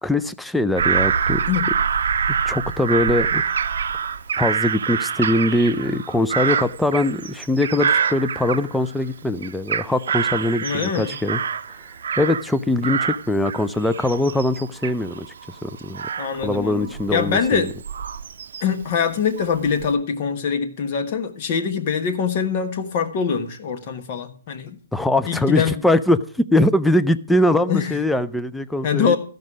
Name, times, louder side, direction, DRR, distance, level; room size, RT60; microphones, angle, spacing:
voice 1, 0.0-1.4 2.5-3.4 4.4-11.4 12.2-15.3 15.6-16.0 16.4-17.7 24.9-26.2 26.5-29.2, left 1 dB, 5° left, 0.4 m, -21 dB
Bird vocalization bird call bird song / Crow, 0.8-9.1 9.4-12.6 12.8-18.8 19.4-19.9, right 7 dB, 70° right, 0.6 m, -25 dB
voice 2, 10.6-11.2 16.2-17.8 18.6-24.8 25.2-25.8 27.7-27.9 28.8-29.2, left 6 dB, 40° left, 1.4 m, -23 dB
13.5 x 5.3 x 6.1 m
hypercardioid pair, 150°, 0 cm